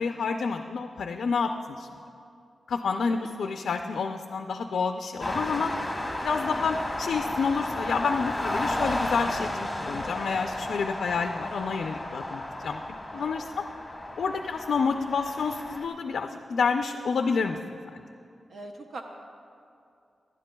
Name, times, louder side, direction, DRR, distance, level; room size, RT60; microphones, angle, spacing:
voice 1, 0.0-1.5 1.8-1.9 2.7-5.7 6.2-13.6 14.2-17.6 17.9-18.0, left 5 dB, 90° left, 5 dB, 0.4 m, -29 dB
sound 1, 5.2-15.9, left 1 dB, 15° left, 1.2 m, -33 dB
voice 2, 18.5-19.0, right 2 dB, 60° right, 3 dB, 0.7 m, -42 dB
19.5 x 11.5 x 2.3 m, 2.5 s
wide cardioid pair, 150°, 0 cm